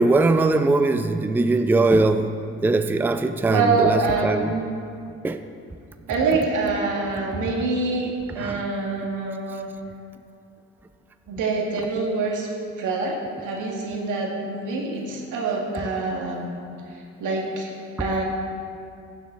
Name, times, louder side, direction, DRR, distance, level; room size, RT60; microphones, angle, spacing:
voice 1, 0.0-2.3 2.6-4.5 5.2-5.4 8.4-8.6, right 2 dB, 5° right, 9 dB, 0.4 m, -20 dB
voice 2, 3.5-4.7 6.1-9.7 11.3-12.5 12.8-16.5 16.9-18.2, right 3 dB, 85° right, -1 dB, 2.0 m, -25 dB
15.0 x 7.4 x 3.9 m, 2.4 s
cardioid pair, 90°, 30 cm